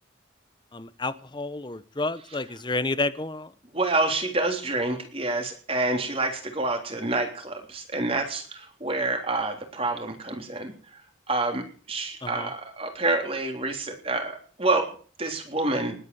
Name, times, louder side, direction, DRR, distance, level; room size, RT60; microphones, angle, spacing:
voice 1, 0.7-3.5 12.2-12.5, left 3 dB, 25° left, 15 dB, 0.9 m, -30 dB
voice 2, 3.7-11.0 11.3-14.9 15.2-15.9, right 2 dB, 30° right, 4 dB, 3.4 m, -28 dB
19.5 x 8.9 x 7.1 m, 0.43 s
head